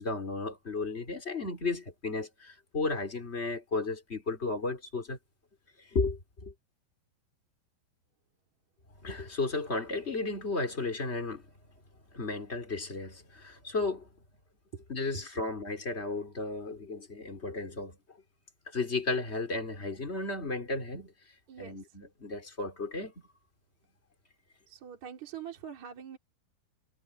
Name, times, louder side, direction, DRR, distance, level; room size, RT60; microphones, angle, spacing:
voice 1, 0.0-5.2 5.9-6.5 9.0-11.5 12.1-14.1 14.9-18.0 18.7-21.1 21.6-23.1, left 3 dB, 15° left, 3.3 m, -34 dB
voice 2, 21.5-21.8 24.7-26.2, right 8 dB, 45° right, 3.8 m, -44 dB
omnidirectional pair, 5.1 m